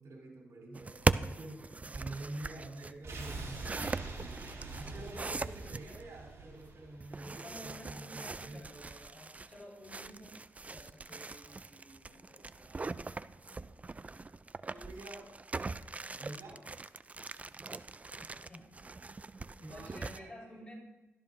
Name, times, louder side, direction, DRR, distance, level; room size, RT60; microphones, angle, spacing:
voice 1, 0.0-1.6 1.9-4.4 4.7-8.6 12.6-13.1 14.7-15.4 16.1-16.7 19.6-20.6, right 2 dB, 80° right, -2 dB, 3.5 m, -48 dB
sound 1, 0.7-6.0 7.0-20.2, right 3 dB, 25° right, 0.3 m, -40 dB
sound 2, 3.0-8.0 8.3-8.4, right 3 dB, 60° right, 2.7 m, -45 dB
voice 2, 7.2-12.8 18.2-19.1 19.6-20.7, left 1 dB, 20° left, -3 dB, 4.3 m, -53 dB
14.0 x 12.5 x 2.6 m, 1.1 s
cardioid pair, 70°, 5 cm